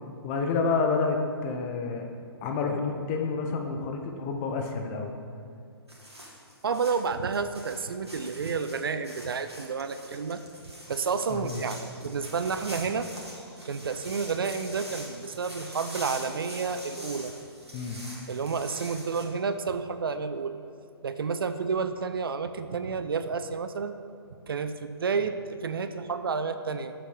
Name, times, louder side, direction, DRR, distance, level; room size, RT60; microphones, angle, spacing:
voice 1, 0.2-2.1 2.4-5.1 11.3-11.6 17.7-18.0, left 4 dB, 25° left, 3 dB, 0.9 m, -29 dB
sound 1, 5.9-19.2, equal, 85° right, 2.0 m, -44 dB
voice 2, 6.6-10.4 10.9-13.1 13.6-17.3 18.3-20.6 21.0-24.0 24.4-26.9, right 5 dB, 60° right, 10 dB, 0.5 m, -30 dB
7.4 x 7.2 x 5.1 m, 2.4 s
figure-of-eight pair, 125°, 14 cm